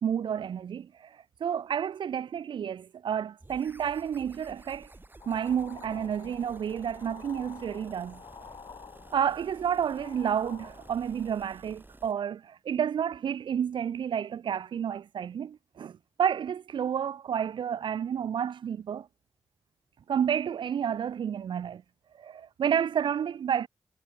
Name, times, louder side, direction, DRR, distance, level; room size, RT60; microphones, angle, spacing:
voice 1, 0.0-4.9 5.3-8.2 9.1-19.1 20.1-21.8 22.2-23.7, right 8 dB, 70° right, 0.4 m, -30 dB
sound 1, 3.4-12.1, right 2 dB, 25° right, 1.3 m, -52 dB
sound 2, 5.2-11.4, left 6 dB, 75° left, 1.8 m, -49 dB
cardioid pair, 40°, 8 cm